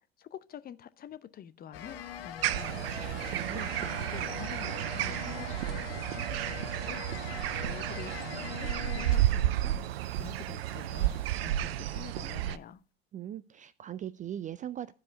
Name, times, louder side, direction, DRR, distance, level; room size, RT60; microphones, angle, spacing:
voice 1, 0.2-9.8 10.2-12.8, left 9 dB, 30° left, 0.7 m, -47 dB
sound 1, 1.7-9.6 9.9-11.4, left 9 dB, 75° left, 1.1 m, -43 dB
sound 2, 2.4-12.6, right 13 dB, 75° right, 0.5 m, -32 dB
voice 2, 3.3-3.7 13.1-14.9, right 10 dB, 25° right, 0.4 m, -39 dB
12.0 x 4.9 x 5.2 m
hypercardioid pair, 80°, 30 cm